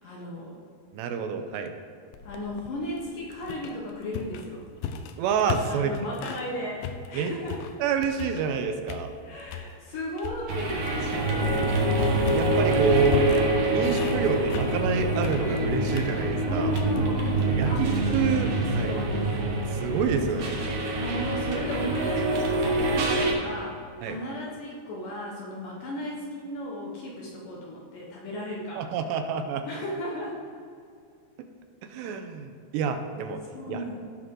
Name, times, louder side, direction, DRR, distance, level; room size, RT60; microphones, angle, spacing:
voice 1, 0.0-0.6 2.2-4.7 5.7-7.6 9.2-12.0 16.5-17.9 18.3-18.4 18.7-19.3 20.3-20.5 20.9-28.9 29.6-30.4 33.5-33.9, left 1 dB, 65° left, -3 dB, 2.3 m, -35 dB
voice 2, 0.9-1.7 5.2-6.0 7.1-7.3 7.8-9.1 12.3-13.4 13.7-16.7 17.6-19.0 19.7-20.6 24.0-24.2 28.8-29.6 31.9-33.4 33.7-33.8, right 5 dB, 85° right, 6 dB, 2.8 m, -27 dB
sound 1, 2.1-6.5 6.8-8.6 8.9-9.7 10.2-20.7, left 6 dB, 85° left, 2.0 m, -38 dB
sound 2, 10.5-23.3, right 2 dB, 60° right, 2.1 m, -26 dB
16.0 x 6.2 x 3.7 m, 2.4 s
omnidirectional pair, 5.0 m